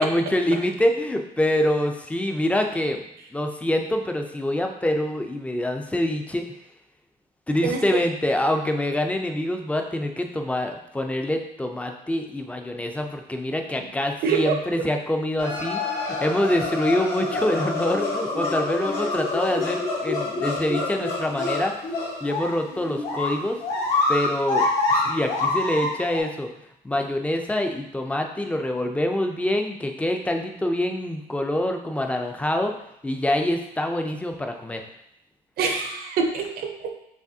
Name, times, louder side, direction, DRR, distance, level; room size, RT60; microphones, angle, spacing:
voice 1, 0.0-3.0 3.3-6.4 7.5-21.7 22.2-23.6 24.1-26.5 26.8-32.7 33.0-34.8, left 1 dB, 10° left, 4 dB, 0.4 m, -25 dB
voice 2, 7.6-8.0 13.8-13.9 14.2-14.6 35.6-36.9, right 5 dB, 65° right, 4 dB, 0.7 m, -25 dB
sound 1, 15.4-26.2, left 2 dB, 70° left, 1.3 m, -26 dB
4.9 x 3.1 x 2.7 m, 0.79 s
cardioid pair, 110°, 17 cm